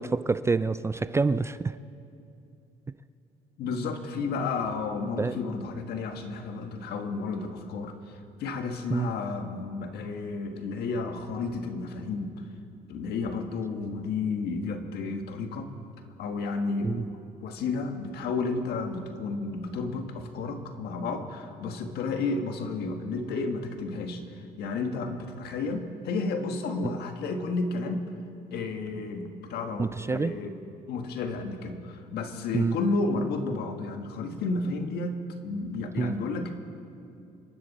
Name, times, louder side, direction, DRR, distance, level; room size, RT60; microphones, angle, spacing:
voice 1, 0.0-1.8 5.2-5.3 8.9-9.1 16.8-17.0 29.8-30.3 32.5-32.8 36.0-36.1, right 4 dB, 15° right, 14 dB, 0.3 m, -27 dB
voice 2, 3.6-12.4 12.9-15.7 16.2-28.0 28.5-30.6 30.9-36.5, left 3 dB, 70° left, 6 dB, 1.5 m, -32 dB
26.5 x 11.0 x 4.1 m, 2.6 s
cardioid pair, 110°, 17 cm